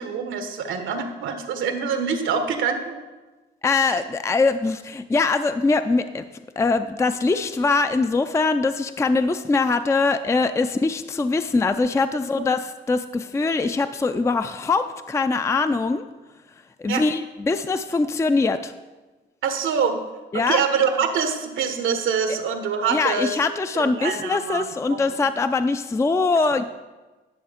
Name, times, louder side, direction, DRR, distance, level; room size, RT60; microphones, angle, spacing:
voice 1, 0.0-3.0 3.8-3.9 16.9-17.0 19.4-19.9 20.3-23.4 23.7-25.1, right 6 dB, 80° right, 7 dB, 1.2 m, -25 dB
voice 2, 3.6-6.2 6.6-16.0 16.8-18.7 20.3-20.6 22.9-26.6, left 3 dB, 15° left, 10 dB, 0.4 m, -22 dB
10.5 x 6.4 x 5.0 m, 1.2 s
cardioid pair, 90°, 20 cm